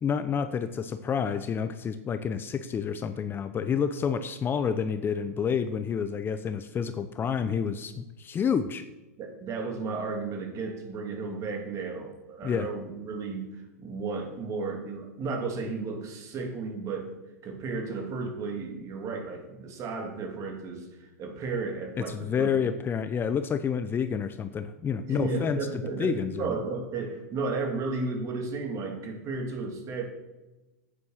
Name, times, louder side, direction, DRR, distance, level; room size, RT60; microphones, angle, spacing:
voice 1, 0.0-8.8 12.4-12.7 22.0-25.6 26.0-26.5, left 7 dB, 25° left, 11 dB, 0.6 m, -29 dB
voice 2, 9.2-13.5 13.8-17.1 17.4-22.5 25.1-30.0, right 4 dB, 40° right, 3 dB, 2.6 m, -33 dB
8.7 x 7.0 x 6.5 m, 1.1 s
hypercardioid pair, 100°, 8 cm